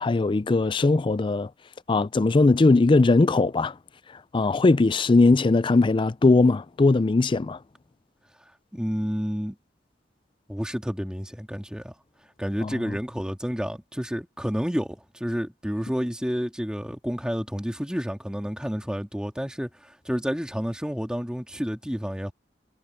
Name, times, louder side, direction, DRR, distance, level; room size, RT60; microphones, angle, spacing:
voice 1, 0.0-1.5 1.9-3.7 4.3-7.6 12.6-13.0, left 3 dB, 25° left, 0.4 m, -20 dB
voice 2, 8.7-9.6 10.5-11.9 12.4-22.3, equal, 5° right, 2.6 m, -30 dB
head